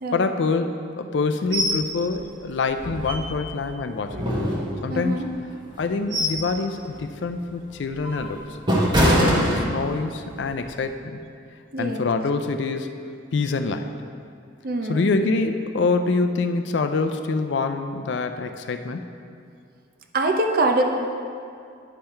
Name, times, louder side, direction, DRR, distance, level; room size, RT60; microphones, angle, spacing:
voice 1, 0.1-4.3 4.8-5.4 5.8-8.6 9.0-11.2 11.8-12.9 13.3-13.9 14.9-19.1, left 3 dB, 65° left, 7 dB, 0.4 m, -25 dB
sound 1, 1.5-1.8 2.2-2.3 2.8-3.6 4.1-5.1 5.7-6.5 6.9-7.1 7.7-10.1 10.5-10.7, equal, 25° right, 1.1 m, -23 dB
voice 2, 4.9-5.3 9.2-9.5 11.7-12.1 14.6-15.1 20.1-20.8, right 2 dB, 50° right, 4 dB, 0.7 m, -24 dB
10.0 x 5.5 x 4.4 m, 2.4 s
head